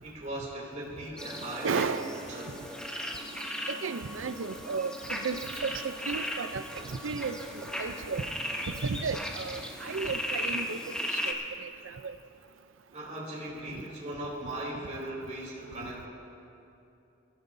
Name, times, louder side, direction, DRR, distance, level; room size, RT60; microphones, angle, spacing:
voice 1, 0.0-2.0 2.3-2.5 12.9-16.1, right 1 dB, 40° right, -5 dB, 2.9 m, -38 dB
sound 1, 1.2-11.3, equal, 5° left, 1.1 m, -37 dB
voice 2, 1.6-2.2 3.7-8.3 8.7-11.3 11.6-12.1, right 5 dB, 85° right, 12 dB, 0.5 m, -34 dB
23.5 x 14.0 x 2.7 m, 2.8 s
head